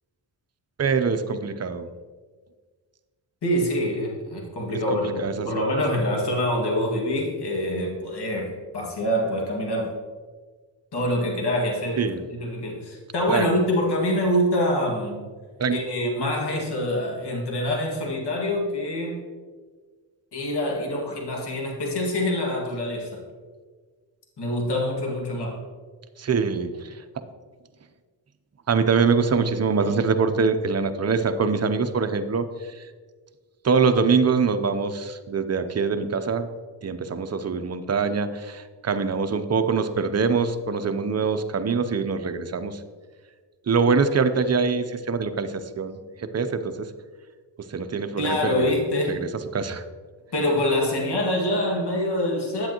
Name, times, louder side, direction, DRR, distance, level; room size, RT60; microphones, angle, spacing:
voice 1, 0.8-1.9 4.9-5.6 12.0-12.2 13.3-13.5 15.6-15.8 26.2-27.0 28.7-32.4 32.8-32.9 33.6-36.5 36.8-42.8 43.7-46.0 46.3-46.9 47.7-48.7 49.1-49.8, right 5 dB, 35° right, 8 dB, 0.7 m, -24 dB
voice 2, 3.4-9.9 10.9-15.2 15.7-19.2 20.3-23.2 24.4-25.6 48.2-49.2 50.3-52.7, left 1 dB, 55° left, -1 dB, 2.0 m, -25 dB
8.6 x 7.7 x 3.0 m, 1.5 s
cardioid pair, 60°, 47 cm